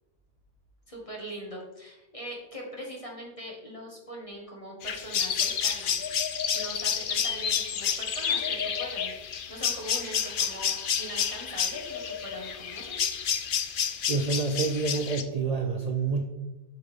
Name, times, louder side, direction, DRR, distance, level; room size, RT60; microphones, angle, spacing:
voice 1, 0.9-6.0 6.5-13.2, right 1 dB, 30° left, -2 dB, 1.9 m, -41 dB
sound 1, 4.8-15.2, left 7 dB, 55° left, 0.7 m, -30 dB
voice 2, 14.1-16.2, right 4 dB, 45° right, 4 dB, 0.6 m, -28 dB
8.1 x 5.7 x 3.6 m, 0.99 s
omnidirectional pair, 1.2 m